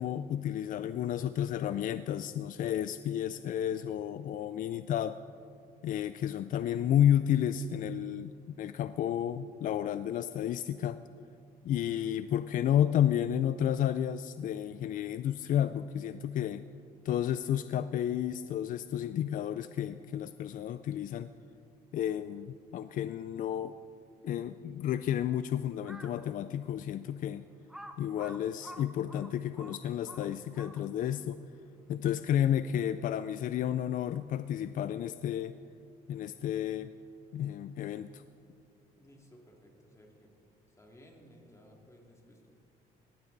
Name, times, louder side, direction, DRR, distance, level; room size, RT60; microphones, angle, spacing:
voice 1, 0.0-5.2 5.8-11.0 11.6-16.6 17.0-21.3 21.9-23.7 24.2-27.5 28.0-31.4 31.9-35.5 36.1-36.9 37.3-38.2, left 10 dB, 55° left, 13 dB, 0.4 m, -31 dB
Crow, 25.7-26.2 26.8-26.9 27.7-31.1, equal, 5° right, 1.1 m, -49 dB
voice 2, 39.0-40.3 40.8-42.5, equal, 15° left, 1 dB, 2.6 m, -57 dB
19.0 x 15.5 x 4.0 m, 2.5 s
cardioid pair, 110°, 17 cm